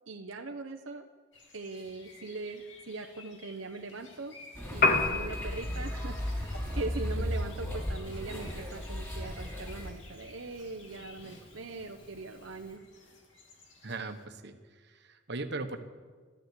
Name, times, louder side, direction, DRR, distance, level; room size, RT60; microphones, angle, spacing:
voice 1, 0.1-1.1 1.5-4.4 4.7-12.8, right 3 dB, 80° right, 4 dB, 0.9 m, -41 dB
sound 1, 1.3-14.3, left 3 dB, 65° left, 2.7 m, -55 dB
sound 2, 4.5-9.9, equal, 15° left, 3.8 m, -35 dB
Piano, 4.7-12.8, left 3 dB, 50° left, 2.0 m, -36 dB
voice 2, 13.8-15.8, right 3 dB, 60° right, 6 dB, 1.2 m, -39 dB
13.5 x 13.0 x 8.2 m, 1.5 s
head